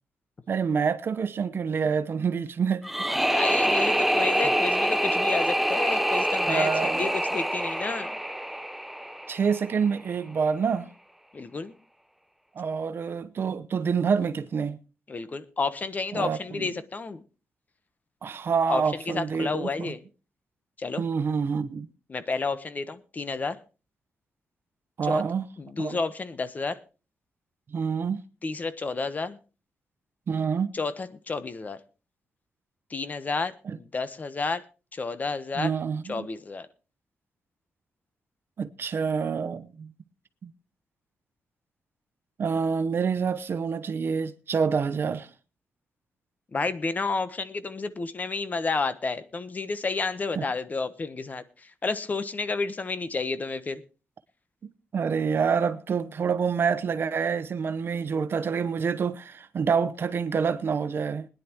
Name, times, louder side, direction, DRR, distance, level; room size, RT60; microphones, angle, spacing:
voice 1, 0.5-2.9 3.2-3.5 6.5-7.1 9.3-10.9 12.5-14.8 16.1-16.7 18.2-19.9 21.0-21.9 25.0-25.5 25.8-26.0 27.7-28.2 30.3-30.7 33.6-33.8 35.5-36.3 38.6-39.9 40.4-40.5 42.4-45.3 50.3-50.4 54.6-61.3, right 6 dB, 55° right, 1.0 m, -27 dB
sound 1, 2.8-9.8, equal, 5° right, 0.7 m, -26 dB
voice 2, 3.3-8.1 11.3-11.7 15.1-17.2 18.7-20.0 20.8-21.0 22.1-23.6 25.0-25.2 25.6-26.8 28.4-29.4 30.7-31.8 32.9-34.6 34.9-35.7 36.1-36.7 46.5-53.8, left 4 dB, 35° left, 1.1 m, -31 dB
21.0 x 10.5 x 3.0 m
cardioid pair, 90°, 5 cm